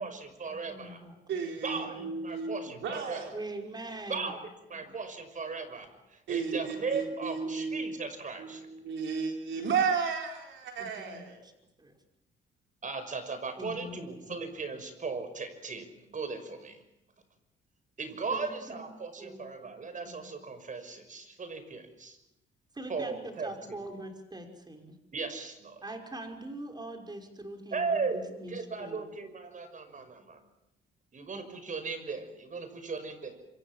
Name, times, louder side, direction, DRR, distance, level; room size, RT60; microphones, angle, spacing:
voice 1, 0.0-1.1 1.6-3.2 4.1-4.4 4.7-8.7 12.8-16.8 18.0-22.2 22.9-23.8 25.1-25.8 27.7-28.2 28.5-30.5 31.1-33.4, right 4 dB, 40° right, 10 dB, 5.8 m, -37 dB
voice 2, 0.7-1.2 1.7-2.4 3.3-4.3 4.7-4.9 6.6-6.7 10.8-11.5 11.8-11.9 13.6-14.4 18.3-18.9 19.2-19.7 20.0-20.3 22.7-25.0 25.8-29.0, right 1 dB, 20° right, 4 dB, 5.7 m, -43 dB
voice 3, 1.3-3.3 6.3-8.0 8.4-11.5, right 5 dB, 70° right, 3 dB, 4.2 m, -33 dB
26.5 x 26.0 x 7.6 m, 0.86 s
cardioid pair, 90°, 20 cm